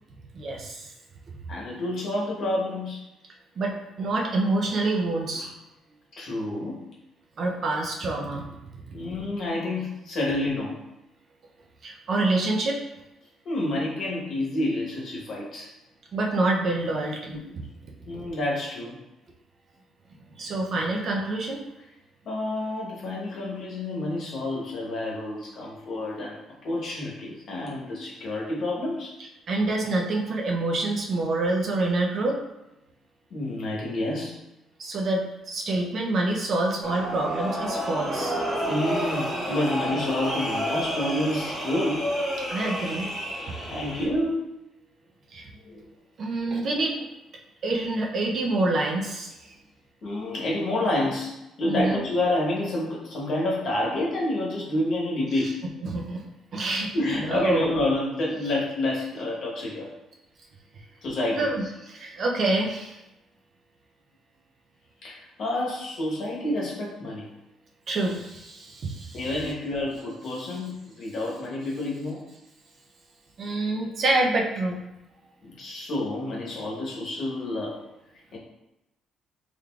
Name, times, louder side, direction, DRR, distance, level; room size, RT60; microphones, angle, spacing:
voice 1, 0.3-0.9 3.6-5.5 7.4-8.5 8.7-9.0 11.8-12.8 16.1-17.6 20.4-21.6 29.5-32.4 34.8-38.4 42.5-43.1 45.3-45.5 46.2-47.0 47.6-49.5 51.6-52.0 55.8-56.2 56.5-56.9 57.2-57.7 61.4-63.0 67.9-69.2 73.4-74.8, right 2 dB, 40° right, 0 dB, 0.4 m, -27 dB
voice 2, 1.5-3.0 5.3-5.5 6.2-6.9 8.9-10.8 13.4-15.7 17.3-17.6 18.1-19.0 22.2-29.2 33.3-34.4 38.6-42.1 43.7-44.5 45.5-45.9 50.0-55.7 56.9-59.9 61.0-61.5 65.0-67.3 69.1-72.2 75.4-77.8 78.3-78.4, left 1 dB, 50° left, -4 dB, 1.0 m, -29 dB
sound 1, 36.8-44.1, equal, 15° right, 1.2 m, -30 dB
3.6 x 3.2 x 2.3 m, 0.94 s
cardioid pair, 165°, 0 cm